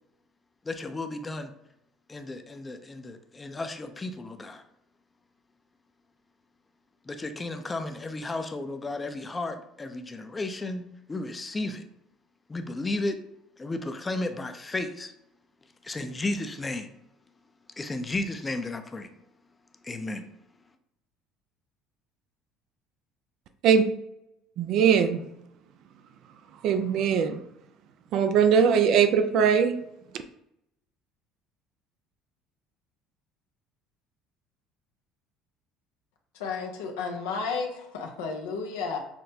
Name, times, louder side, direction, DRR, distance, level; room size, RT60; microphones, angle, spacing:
voice 1, 0.6-1.5 2.1-4.6 7.1-11.9 12.5-13.2 13.6-15.1 15.8-16.9 17.8-19.1 19.8-20.2, left 2 dB, 20° left, 0.5 m, -33 dB
voice 2, 24.6-25.2 26.6-27.4 28.1-29.8, right 7 dB, 65° right, 0.4 m, -21 dB
voice 3, 36.3-39.0, left 5 dB, 80° left, 0.6 m, -32 dB
5.8 x 2.1 x 2.7 m
hypercardioid pair, 75°, 0 cm